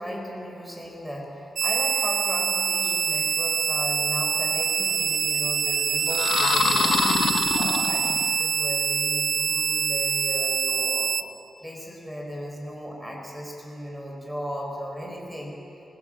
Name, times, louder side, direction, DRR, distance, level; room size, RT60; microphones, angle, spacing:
voice 1, 0.0-11.1 11.6-15.6, equal, 5° right, 0 dB, 4.1 m, -36 dB
sound 1, 1.6-11.2, right 7 dB, 65° right, 0.7 m, -25 dB
sound 2, 6.1-8.4, left 6 dB, 60° left, 0.9 m, -25 dB
26.5 x 19.5 x 7.5 m, 2.9 s
wide cardioid pair, 145°, 0 cm